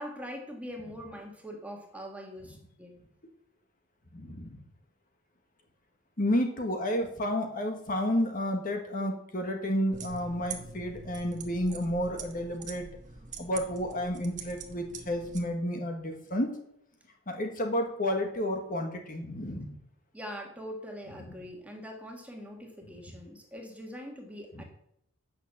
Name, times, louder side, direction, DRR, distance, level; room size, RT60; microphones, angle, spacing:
voice 1, 0.0-3.0 20.1-24.6, equal, 5° right, 1 dB, 1.7 m, -42 dB
voice 2, 4.1-4.6 6.2-12.9 13.4-16.5 17.3-19.8 24.5-24.6, equal, 40° left, 3 dB, 1.4 m, -31 dB
sound 1, 9.9-15.4, right 5 dB, 35° right, 1.2 m, -44 dB
9.4 x 6.6 x 7.1 m, 0.74 s
head